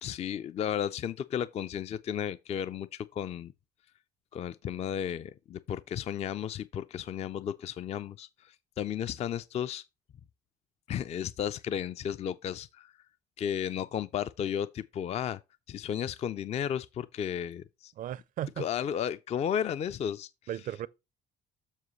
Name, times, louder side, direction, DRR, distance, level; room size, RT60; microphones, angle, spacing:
voice 1, 0.0-3.5 4.3-9.8 10.9-12.9 13.4-15.4 15.7-17.9 18.6-20.3, left 9 dB, 40° left, 0.4 m, -33 dB
voice 2, 18.0-18.7 20.5-20.9, right 11 dB, 55° right, 0.4 m, -35 dB
7.3 x 6.2 x 3.1 m
cardioid pair, 110°, 17 cm